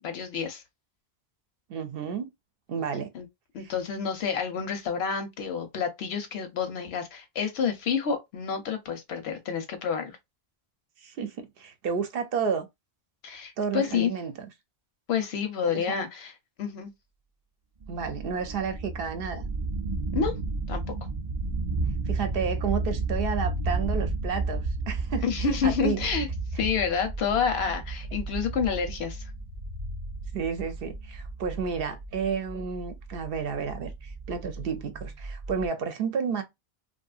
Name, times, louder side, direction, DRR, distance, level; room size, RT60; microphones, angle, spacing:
voice 1, 0.0-0.6 3.1-3.3 3.5-10.2 13.2-14.1 15.1-16.3 16.6-16.9 20.1-20.3 20.7-20.8 25.2-26.3 26.6-29.3, left 6 dB, 85° left, 0.9 m, -29 dB
voice 2, 1.7-2.3 2.7-3.1 3.6-3.7 11.0-12.7 13.6-14.5 15.7-16.0 17.9-19.5 22.1-25.3 25.6-26.0 26.6-26.7 30.3-36.4, right 6 dB, 70° right, 0.8 m, -31 dB
sound 1, 17.8-35.7, right 3 dB, 45° right, 0.3 m, -33 dB
2.7 x 2.4 x 2.3 m
omnidirectional pair, 1.0 m